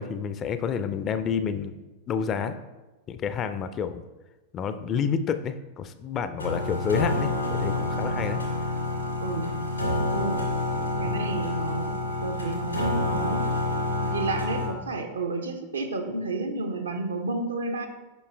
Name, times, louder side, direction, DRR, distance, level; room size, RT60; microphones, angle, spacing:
voice 1, 0.0-1.7 2.1-2.6 3.1-4.0 4.5-8.4 11.0-11.1, left 7 dB, 30° left, 11 dB, 0.4 m, -29 dB
sound 1, 6.4-14.7, left 2 dB, 85° left, 1.6 m, -28 dB
voice 2, 9.2-9.5 10.1-10.4 11.0-13.5 14.0-17.9, right 3 dB, 70° right, 5 dB, 0.7 m, -31 dB
6.3 x 5.4 x 3.3 m, 1.1 s
figure-of-eight pair, 90°, 0 cm